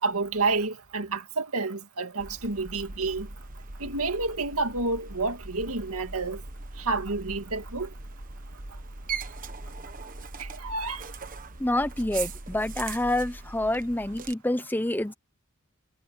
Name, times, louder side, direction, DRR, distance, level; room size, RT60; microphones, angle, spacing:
voice 1, 0.0-3.3 3.8-6.4 6.8-7.9 10.4-11.0, right 3 dB, 80° right, 2.2 m, -29 dB
sound 1, 2.2-14.3, right 4 dB, 40° right, 1.4 m, -40 dB
voice 2, 11.6-15.1, left 1 dB, 10° left, 0.7 m, -27 dB
head